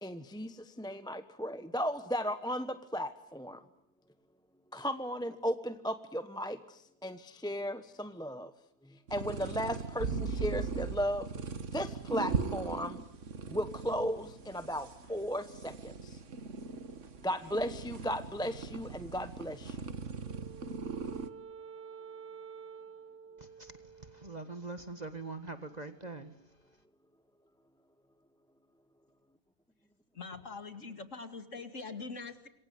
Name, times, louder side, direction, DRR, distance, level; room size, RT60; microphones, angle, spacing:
voice 1, 0.0-3.6 4.7-8.5 8.9-11.3 11.7-13.0 13.5-16.2 17.2-19.8, equal, 5° left, 0.9 m, -36 dB
sound 1, 9.1-21.3, right 5 dB, 45° right, 1.7 m, -39 dB
Wind instrument woodwind instrument, 20.2-24.7, right 6 dB, 85° right, 2.2 m, -50 dB
voice 2, 23.4-26.4, right 3 dB, 25° right, 1.7 m, -43 dB
voice 3, 30.1-32.5, left 4 dB, 45° left, 2.6 m, -43 dB
27.5 x 23.0 x 9.6 m
omnidirectional pair, 1.8 m